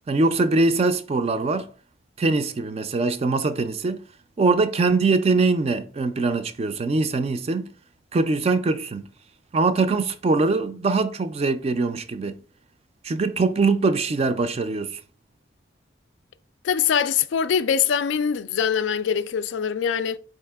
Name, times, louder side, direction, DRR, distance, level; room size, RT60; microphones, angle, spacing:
voice 1, 0.1-1.7 2.2-4.0 4.4-7.7 8.1-9.1 9.5-12.4 13.0-15.0, right 3 dB, 35° right, 0.3 m, -22 dB
voice 2, 16.6-20.2, left 7 dB, 75° left, 0.3 m, -23 dB
4.8 x 2.8 x 3.4 m
head